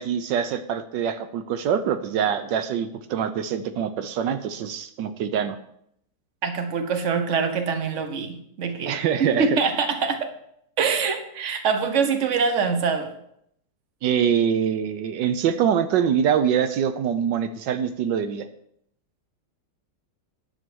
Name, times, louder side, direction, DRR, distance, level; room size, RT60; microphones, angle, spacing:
voice 1, 0.0-5.6 8.9-9.6 14.0-18.5, right 8 dB, 80° right, 10 dB, 1.4 m, -24 dB
voice 2, 6.4-10.3 10.8-13.1, right 5 dB, 45° right, 7 dB, 1.4 m, -24 dB
10.5 x 7.1 x 6.2 m, 0.73 s
omnidirectional pair, 1.9 m